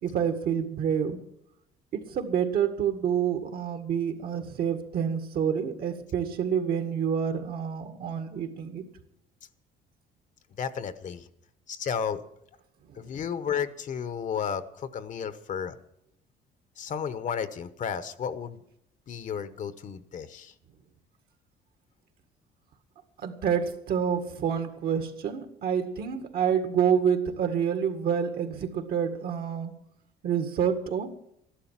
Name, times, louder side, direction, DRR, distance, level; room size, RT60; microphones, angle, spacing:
voice 1, 0.0-1.2 1.9-8.8 13.0-13.1 23.2-29.7 30.2-31.1, right 8 dB, 65° right, 7 dB, 1.9 m, -28 dB
voice 2, 10.6-11.3 11.7-12.2 12.9-15.8 16.8-18.6 19.1-20.5, left 7 dB, 50° left, 12 dB, 1.0 m, -33 dB
13.5 x 11.5 x 7.4 m, 0.78 s
cardioid pair, 110°, 17 cm